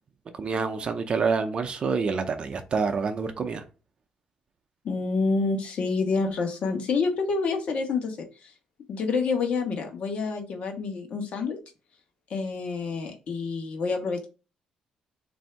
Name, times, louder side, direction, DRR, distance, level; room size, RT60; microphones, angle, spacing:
voice 1, 0.3-3.6, right 5 dB, 45° right, 0.6 m, -27 dB
voice 2, 4.8-8.5 8.9-11.6 12.3-14.3, left 4 dB, 60° left, 1.0 m, -28 dB
3.3 x 2.7 x 4.4 m
cardioid pair, 115°, 2 cm